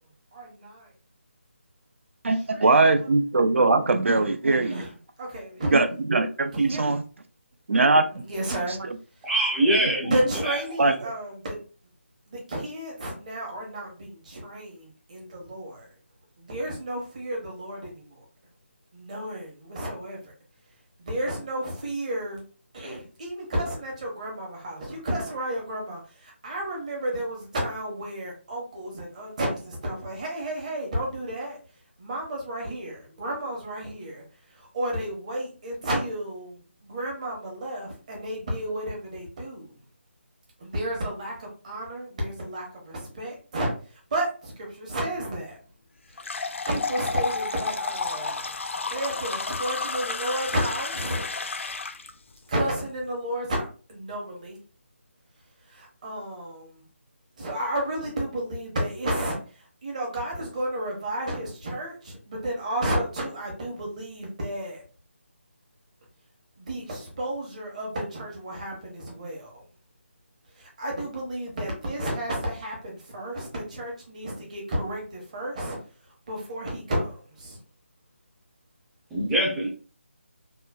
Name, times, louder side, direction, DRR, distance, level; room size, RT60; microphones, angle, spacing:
voice 1, 0.3-0.9 2.3-3.1 4.6-4.9 5.2-5.9 6.5-6.9 8.2-8.8 9.2-9.3 10.1-11.6 12.3-15.9 16.4-18.2 18.9-20.3 21.0-22.4 22.7-31.6 32.0-39.8 40.6-45.6 46.1-51.2 52.5-54.6 55.7-56.8 57.4-64.8 66.6-69.6 70.5-75.8 76.0-77.6, right 1 dB, 35° right, -1 dB, 0.9 m, -32 dB
voice 2, 2.2-4.8 5.7-7.0 7.7-8.0 10.8-10.9, right 3 dB, 70° right, 9 dB, 0.4 m, -21 dB
voice 3, 9.2-10.6 10.9-11.0 79.1-79.7, right 1 dB, 5° right, -6 dB, 0.4 m, -24 dB
sound 1, 46.2-52.1, left 4 dB, 70° left, 0.4 m, -31 dB
3.0 x 2.2 x 2.2 m, 0.37 s
figure-of-eight pair, 165°, 7 cm